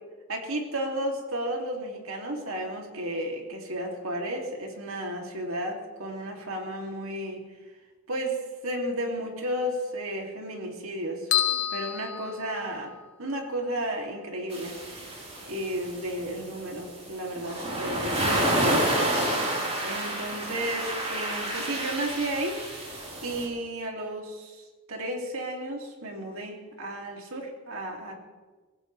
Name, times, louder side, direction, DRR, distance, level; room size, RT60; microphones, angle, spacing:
voice 1, 0.3-7.5 8.1-12.9 13.2-15.0 15.5-19.1 19.8-22.6 22.9-28.1, right 1 dB, 75° right, 1 dB, 3.0 m, -33 dB
sound 1, 11.3-13.1, left 11 dB, 80° left, 1.0 m, -29 dB
sound 2, 14.5-23.5, right 1 dB, 30° right, 4.5 m, -29 dB
24.0 x 16.0 x 3.4 m, 1.3 s
head